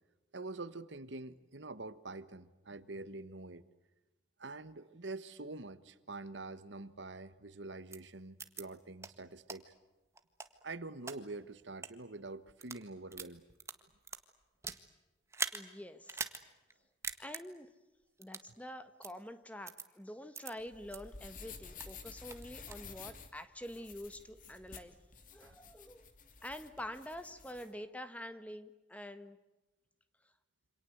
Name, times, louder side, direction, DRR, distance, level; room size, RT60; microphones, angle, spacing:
voice 1, 0.3-3.6 4.4-9.7 10.6-13.4 25.4-25.6, right 2 dB, 75° right, 14 dB, 1.4 m, -46 dB
sound 1, 7.9-8.0 8.4-8.6 9.0-9.1 9.5-9.6 10.2-11.2 11.7-11.9 12.5-12.8 13.1-14.8 15.3-15.6 16.1-16.4 16.7-16.8 17.0-17.4 18.2-18.5 19.0-19.1 19.7-19.9 20.3-20.5 20.9-21.0 21.4-22.0 22.3-22.9, right 4 dB, 15° right, 1.6 m, -41 dB
voice 2, 15.5-16.3 17.2-17.7 18.2-24.9 25.3-26.1 26.4-29.4, left 1 dB, 5° left, 10 dB, 1.5 m, -47 dB
sound 2, 20.6-27.7, left 5 dB, 45° left, 2.8 m, -52 dB
28.0 x 26.5 x 8.0 m, 1.1 s
head